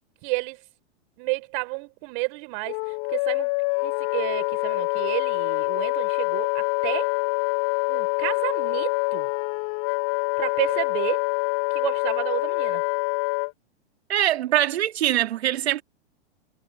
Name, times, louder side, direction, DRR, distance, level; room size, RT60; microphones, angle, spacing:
voice 1, 0.2-0.6 1.2-3.5 3.8-7.1 7.9-9.3 10.4-11.2 11.7-12.8, right 37 dB, 45° right, 4.6 m, -31 dB
Wind instrument woodwind instrument, 2.7-13.5, left 35 dB, 45° left, 3.7 m, -25 dB
voice 2, 14.1-15.8, right 12 dB, 70° right, 2.1 m, -23 dB
hypercardioid pair, 120°, 33 cm